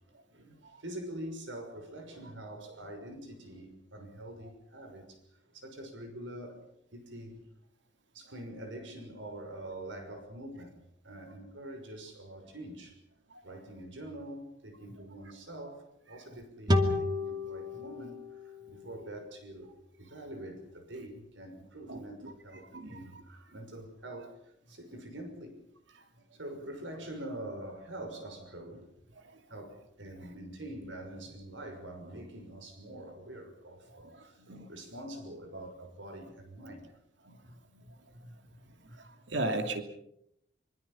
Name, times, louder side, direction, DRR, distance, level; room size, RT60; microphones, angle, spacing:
voice 1, 0.3-5.2 5.5-6.6 6.9-7.5 8.1-10.8 11.0-13.0 13.4-19.7 20.0-25.6 26.3-28.9 29.5-34.4 34.7-36.9, right 1 dB, 90° right, 6.2 m, -45 dB
sound 1, 16.7-20.0, left 1 dB, 25° right, 2.5 m, -32 dB
voice 2, 21.9-22.3 22.7-23.0 34.5-34.7 37.3-37.4 38.2-38.3 39.3-39.8, right 2 dB, 70° right, 2.8 m, -35 dB
25.0 x 25.0 x 5.8 m
head